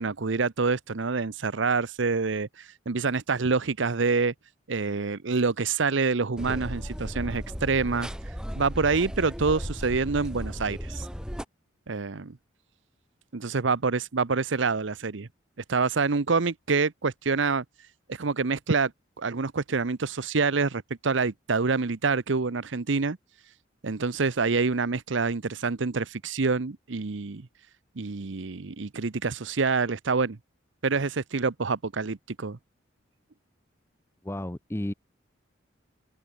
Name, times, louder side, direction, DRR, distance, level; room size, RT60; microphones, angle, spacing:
voice 1, 0.0-4.3 4.7-8.1 8.5-11.1 11.9-12.4 13.3-15.3 15.7-17.6 18.1-18.9 19.2-23.2 23.8-27.4 28.0-30.4 30.8-32.6, right 4 dB, 70° right, 0.8 m, -26 dB
sound 1, 6.4-11.4, equal, 5° right, 2.8 m, -35 dB
voice 2, 34.2-34.9, left 1 dB, 15° left, 0.7 m, -32 dB
open air
head